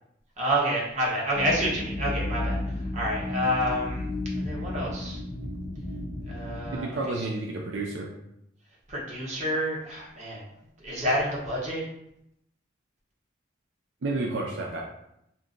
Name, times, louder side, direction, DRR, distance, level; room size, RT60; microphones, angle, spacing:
voice 1, 0.4-4.1 4.3-5.2 6.3-7.3 8.9-10.4 10.8-11.8, equal, 35° right, -4 dB, 0.9 m, -29 dB
sound 1, 1.3-6.8, left 2 dB, 15° left, 0.4 m, -33 dB
voice 2, 6.7-8.1 14.0-14.8, right 2 dB, 70° right, -2 dB, 0.5 m, -30 dB
2.7 x 2.5 x 3.7 m, 0.80 s
head